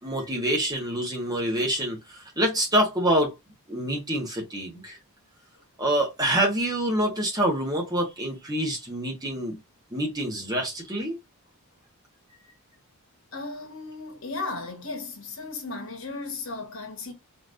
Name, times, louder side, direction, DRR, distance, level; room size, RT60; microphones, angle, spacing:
voice 1, 0.0-3.3 3.7-5.0 5.8-9.6 9.9-11.2, right 1 dB, 15° right, 1.7 m, -26 dB
voice 2, 13.3-17.1, left 3 dB, 60° left, 1.6 m, -35 dB
4.3 x 3.6 x 2.6 m
head